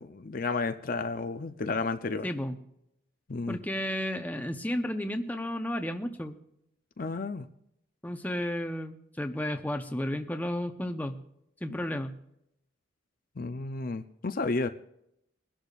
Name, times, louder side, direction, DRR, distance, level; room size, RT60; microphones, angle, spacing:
voice 1, 0.0-2.3 3.3-3.6 7.0-7.4 13.4-14.7, left 3 dB, 45° left, 9 dB, 0.6 m, -32 dB
voice 2, 2.2-2.6 3.5-6.4 8.0-11.2 11.6-12.1, left 1 dB, 10° left, 6 dB, 0.8 m, -32 dB
23.0 x 12.0 x 2.5 m, 0.77 s
head